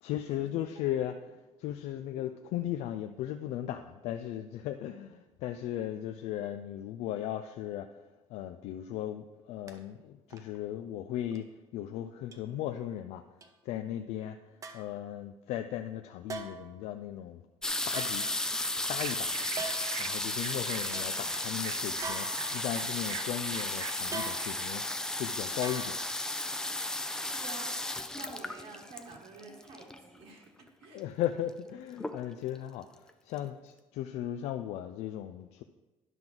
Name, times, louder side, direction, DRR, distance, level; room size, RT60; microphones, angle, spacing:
voice 1, 0.0-8.0 8.3-11.5 11.7-13.2 13.6-17.4 17.9-18.3 18.9-19.3 20.0-24.9 25.2-26.0 30.9-35.6, left 11 dB, 75° left, 8 dB, 0.4 m, -37 dB
sound 1, 9.7-9.8 10.3-10.6 11.3-11.4 12.3-12.4 13.4-13.5 14.6-15.0 16.3-16.8 17.9-18.8 19.5-20.1 20.5-20.6 20.9-21.1 22.0-22.9 24.1-24.8 25.6-26.2 26.5-26.6, right 4 dB, 30° right, 0.7 m, -42 dB
sound 2, 17.6-30.2 31.0-31.1 31.3-31.7 32.0-32.6 33.1-33.2 33.4-33.5, left 1 dB, 5° left, 0.4 m, -34 dB
sound 3, 19.0-24.7, right 12 dB, 80° right, 0.4 m, -45 dB
voice 2, 27.4-27.7 28.1-31.0, right 3 dB, 60° right, -1 dB, 1.5 m, -49 dB
10.5 x 6.0 x 3.8 m, 1.1 s
cardioid pair, 150°, 11 cm